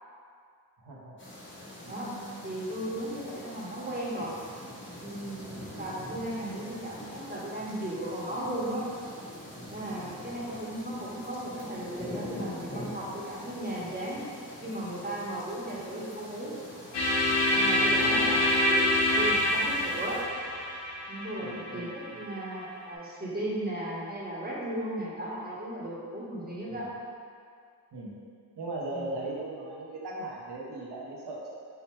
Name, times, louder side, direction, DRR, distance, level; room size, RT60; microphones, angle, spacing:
voice 1, 0.8-1.2 1.8-2.5 6.6-6.9 18.0-18.6 21.4-21.9 26.7-26.9 27.9-28.2 28.6-31.5, right 2 dB, 70° right, -4 dB, 1.1 m, -39 dB
sound 1, 1.2-20.2, left 1 dB, 30° left, 1.1 m, -44 dB
voice 2, 1.9-4.3 4.9-8.9 9.7-14.2 14.6-16.6 17.5-20.2 21.1-26.9 28.9-29.1, right 1 dB, 20° right, -6 dB, 1.5 m, -36 dB
sound 2, 16.9-22.9, left 1 dB, 80° left, 0.8 m, -26 dB
3.9 x 2.8 x 4.3 m, 2.2 s
supercardioid pair, 45°, 41 cm